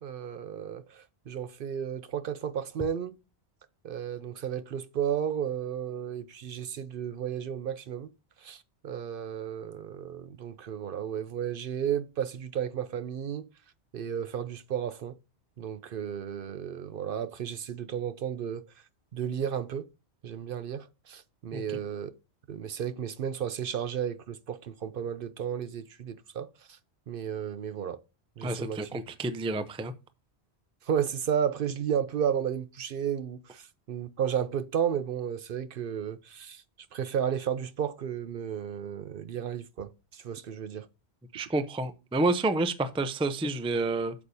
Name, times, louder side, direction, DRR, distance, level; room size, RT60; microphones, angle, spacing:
voice 1, 0.0-3.2 3.8-8.1 8.4-13.4 13.9-15.1 15.6-18.6 19.1-19.8 20.2-22.1 22.5-26.5 27.1-28.0 28.4-28.8 30.9-36.6 36.9-40.9, right 8 dB, 60° right, 0.7 m, -33 dB
voice 2, 28.4-29.9 41.3-44.1, right 2 dB, 10° right, 0.4 m, -29 dB
8.4 x 6.9 x 2.7 m
omnidirectional pair, 1.1 m